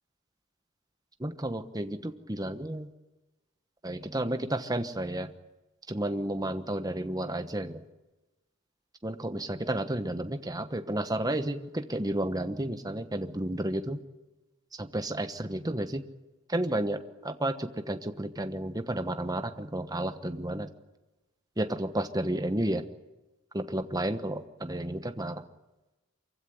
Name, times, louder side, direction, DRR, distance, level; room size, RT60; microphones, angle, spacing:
voice 1, 1.2-2.9 3.8-5.3 5.9-7.8 9.0-14.0 14.8-16.0 16.5-20.7 21.6-22.8 23.5-25.4, right 1 dB, 15° right, 8 dB, 1.1 m, -32 dB
24.5 x 16.0 x 10.0 m, 1.1 s
head